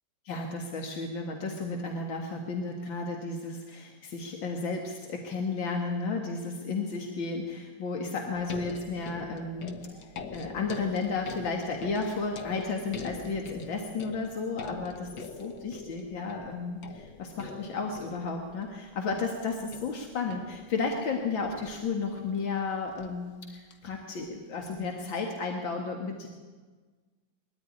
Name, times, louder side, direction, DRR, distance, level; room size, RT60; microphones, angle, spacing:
voice 1, 0.3-9.8 10.3-26.3, left 4 dB, 90° left, 2 dB, 2.5 m, -33 dB
sound 1, 8.3-23.7 24.8-24.9, left 5 dB, 65° left, 1.9 m, -45 dB
21.5 x 14.0 x 9.9 m, 1.4 s
omnidirectional pair, 2.0 m